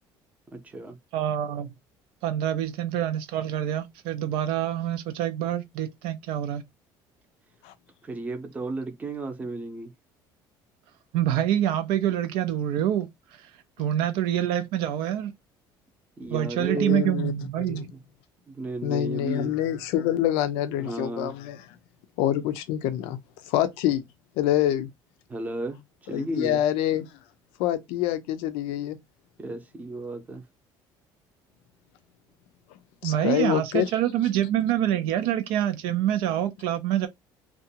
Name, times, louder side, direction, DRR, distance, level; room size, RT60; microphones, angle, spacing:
voice 1, 0.5-1.0 8.0-9.9 16.2-17.0 17.9-18.0 18.5-19.5 20.8-21.3 25.3-25.8 26.1-26.6 29.4-30.4, right 2 dB, 15° right, 0.6 m, -33 dB
voice 2, 1.1-1.7 2.2-6.6 11.1-13.5 13.8-15.3 16.3-17.9 33.0-37.1, right 11 dB, 80° right, 0.4 m, -26 dB
voice 3, 16.7-17.3 17.7-17.9 18.8-21.6 22.2-23.2 23.4-24.0 24.4-24.9 26.1-27.1 27.6-29.0 33.0-33.9, left 12 dB, 90° left, 0.4 m, -26 dB
2.5 x 2.2 x 2.7 m
cardioid pair, 140°, 9 cm